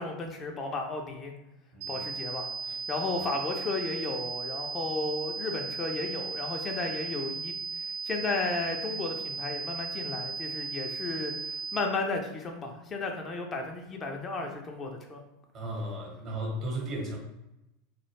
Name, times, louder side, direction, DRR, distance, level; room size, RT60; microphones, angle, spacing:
voice 1, 0.0-1.3 1.9-2.5 2.9-7.5 7.8-15.2, left 3 dB, 30° left, 2 dB, 0.4 m, -34 dB
voice 2, 1.7-2.1 2.7-2.8 3.2-3.3 15.5-17.2, right 1 dB, 40° right, -1 dB, 0.9 m, -35 dB
sound 1, 1.8-11.8, right 5 dB, 65° right, 0.3 m, -36 dB
2.3 x 2.1 x 3.0 m, 0.93 s
hypercardioid pair, 85°, 0 cm